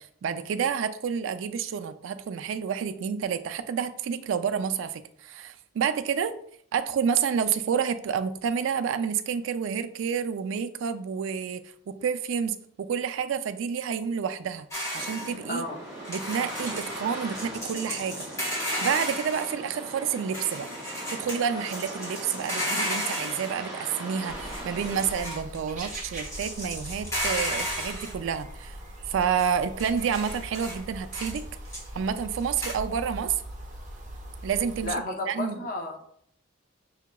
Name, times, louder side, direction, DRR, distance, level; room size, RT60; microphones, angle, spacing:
voice 1, 0.0-6.3 6.7-14.7 14.9-15.6 16.1-20.7 21.1-28.8 29.1-31.4 31.9-33.4 34.4-34.9 35.3-35.6, right 7 dB, 70° right, 10 dB, 0.3 m, -29 dB
sound 1, 14.7-15.3 16.0-17.0 17.3-19.5 20.1-21.4 21.7-23.5 24.3-25.6 25.8-28.1 29.4-29.5 29.8-30.8 31.1-31.4 31.7-31.9 32.6-32.7, equal, 15° left, 1.2 m, -33 dB
sound 2, 14.9-25.1, right 1 dB, 20° right, 1.5 m, -40 dB
voice 2, 15.5-15.8 34.8-36.0, left 2 dB, 40° left, 2 dB, 0.6 m, -32 dB
sound 3, 24.3-34.9, right 1 dB, 35° right, 0.7 m, -41 dB
5.6 x 2.8 x 2.2 m, 0.66 s
head